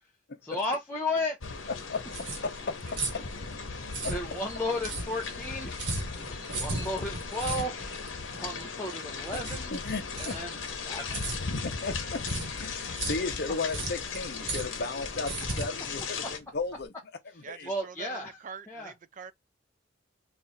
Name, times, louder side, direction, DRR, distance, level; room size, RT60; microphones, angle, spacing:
voice 1, 0.4-1.4 3.7-5.8 6.2-7.8 8.3-9.7 10.2-11.2 17.7-18.4 18.7-18.9, left 2 dB, 10° left, 0.7 m, -34 dB
sound 1, 1.4-16.4, left 5 dB, 80° left, 1.0 m, -38 dB
sound 2, 1.7-16.8, right 2 dB, 65° right, 1.3 m, -38 dB
voice 2, 1.9-2.7 4.0-4.1 9.3-9.4 9.7-10.4 11.6-12.2 12.6-16.9 17.4-17.7, left 3 dB, 55° left, 0.8 m, -35 dB
voice 3, 3.1-3.8 17.4-19.3, right 6 dB, 40° right, 0.4 m, -46 dB
3.4 x 2.5 x 4.2 m
head